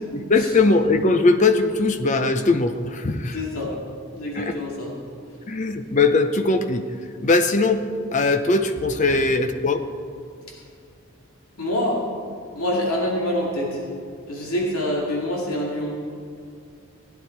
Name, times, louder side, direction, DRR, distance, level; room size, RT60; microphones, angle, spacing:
voice 1, 0.1-3.4 4.3-4.6 5.5-6.8 7.2-7.9 8.1-9.8, left 3 dB, 35° left, 8 dB, 0.6 m, -20 dB
voice 2, 3.3-3.7 4.1-4.9 9.1-9.2 11.6-12.0 12.5-13.8 14.3-16.0, left 1 dB, 80° left, -3 dB, 2.4 m, -26 dB
16.5 x 10.0 x 4.6 m, 2.3 s
head